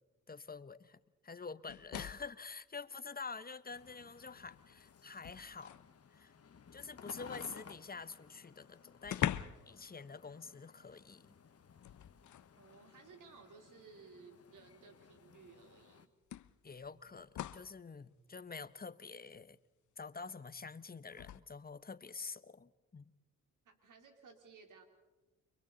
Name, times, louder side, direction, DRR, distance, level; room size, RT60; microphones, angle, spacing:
voice 1, 0.3-5.8 6.1-6.3 6.7-9.3 9.7-11.4 16.6-19.6 20.0-23.1, left 4 dB, 30° left, 15 dB, 1.0 m, -47 dB
sound 1, 1.7-2.4 3.8-3.9 4.4-6.0 8.0-8.1 8.4-8.5 9.0-9.8 10.0-10.3 11.8-12.5 13.7-13.8 15.3-15.4 16.3-17.8 21.1-21.4, left 11 dB, 65° left, 0.8 m, -42 dB
sound 2, 3.7-16.1, left 6 dB, 50° left, 1.3 m, -58 dB
voice 2, 12.6-16.1 23.6-24.8, right 5 dB, 75° right, 4 dB, 3.5 m, -58 dB
30.0 x 24.0 x 4.0 m, 1.1 s
supercardioid pair, 60°, 31 cm